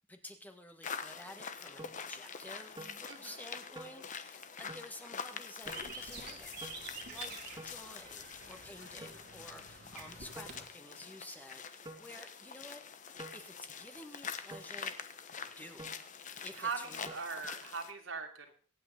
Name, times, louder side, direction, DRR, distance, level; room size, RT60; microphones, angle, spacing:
voice 1, 0.1-6.5 6.9-13.0 13.3-14.9 15.6-17.2, left 1 dB, 10° left, 5 dB, 1.6 m, -51 dB
sound 1, 0.8-17.9, left 6 dB, 40° left, 1.1 m, -46 dB
sound 2, 1.8-2.0 2.8-3.0 3.7-4.0 4.7-4.9 5.7-5.8 6.6-6.8 7.6-7.8 9.0-9.2 10.4-10.6 11.8-12.1 13.2-13.4 14.5-14.7 15.8-16.0 17.1-17.2, right 1 dB, 25° right, 2.4 m, -48 dB
voice 2, 3.1-3.4 8.8-9.1 16.6-18.5, right 5 dB, 85° right, 2 dB, 2.9 m, -41 dB
sound 3, 5.6-10.7, right 4 dB, 55° right, 2.6 m, -49 dB
24.5 x 9.1 x 3.9 m, 0.39 s
head